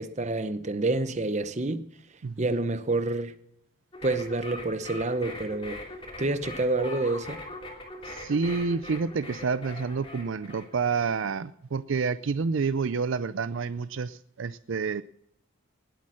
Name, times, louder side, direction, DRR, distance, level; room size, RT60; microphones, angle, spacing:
voice 1, 0.0-1.8 2.4-3.3 4.0-5.8 6.2-7.4, right 2 dB, 30° right, 0.8 m, -28 dB
sound 1, 3.9-11.0, left 1 dB, 25° left, 3.0 m, -41 dB
voice 2, 8.0-15.0, right 5 dB, 60° right, 0.4 m, -29 dB
19.5 x 8.5 x 6.4 m
head